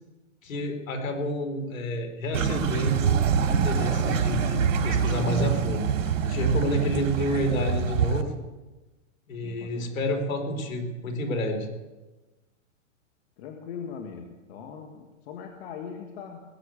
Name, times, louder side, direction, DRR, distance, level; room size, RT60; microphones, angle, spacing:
voice 1, 0.4-3.1 3.5-5.8 6.2-8.4 9.3-11.7, equal, 80° left, 5 dB, 4.1 m, -29 dB
sound 1, 2.3-8.2, right 7 dB, 70° right, 2.4 m, -25 dB
voice 2, 9.4-10.1 13.4-16.4, left 7 dB, 50° left, 3 dB, 1.9 m, -40 dB
20.0 x 8.4 x 8.5 m, 1.2 s
hypercardioid pair, 145°, 39 cm